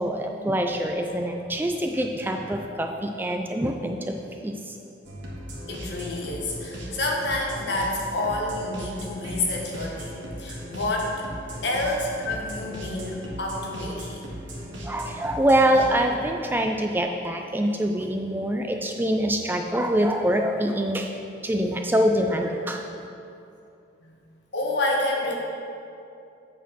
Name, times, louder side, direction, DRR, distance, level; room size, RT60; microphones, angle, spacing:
voice 1, 0.0-4.1 4.4-4.7 14.8-21.2 21.4-22.9, right 1 dB, 10° right, 4 dB, 0.3 m, -24 dB
sound 1, 5.0-15.9, equal, 80° right, 1.6 m, -37 dB
voice 2, 5.7-10.1 10.4-11.2 11.6-14.2 24.0-24.2 24.5-25.4, left 2 dB, 65° left, -1 dB, 1.3 m, -28 dB
8.2 x 4.2 x 6.1 m, 2.6 s
head